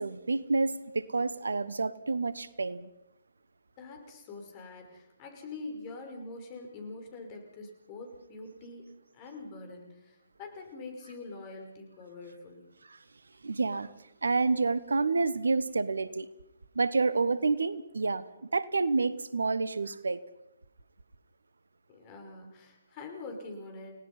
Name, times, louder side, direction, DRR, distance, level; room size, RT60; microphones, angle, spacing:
voice 1, 0.0-2.9 12.9-13.0 13.4-13.9 14.2-16.3 16.7-18.2 18.5-20.2, right 3 dB, 65° right, 17 dB, 1.1 m, -29 dB
voice 2, 3.8-8.8 9.1-12.6 21.9-23.9, left 3 dB, 30° left, 3 dB, 5.8 m, -44 dB
30.0 x 18.5 x 5.6 m, 0.85 s
figure-of-eight pair, 130°, 0 cm